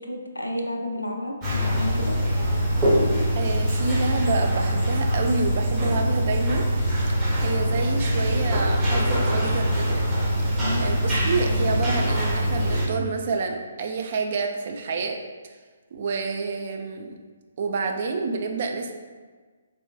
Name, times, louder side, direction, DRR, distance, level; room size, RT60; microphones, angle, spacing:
voice 1, 0.0-2.3 10.6-10.8, left 1 dB, 85° left, 2 dB, 0.4 m, -31 dB
sound 1, 1.4-12.9, equal, 15° right, 0.7 m, -23 dB
voice 2, 3.4-6.7 7.4-10.0 10.8-15.2 15.9-17.1 17.6-18.9, right 4 dB, 45° right, 4 dB, 0.3 m, -28 dB
3.6 x 2.5 x 2.2 m, 1.5 s
figure-of-eight pair, 135°, 0 cm